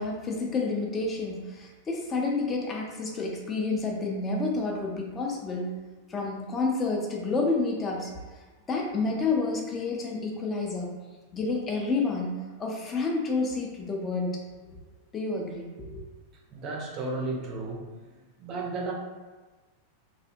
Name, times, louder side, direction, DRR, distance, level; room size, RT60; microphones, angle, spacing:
voice 1, 0.0-5.7 6.1-8.1 8.7-10.9 11.3-14.6 15.1-16.0, left 3 dB, 20° left, 0 dB, 0.5 m, -29 dB
voice 2, 16.5-17.8 18.4-18.9, right 3 dB, 35° right, -1 dB, 0.5 m, -33 dB
2.6 x 2.0 x 2.6 m, 1.3 s
figure-of-eight pair, 90°, 0 cm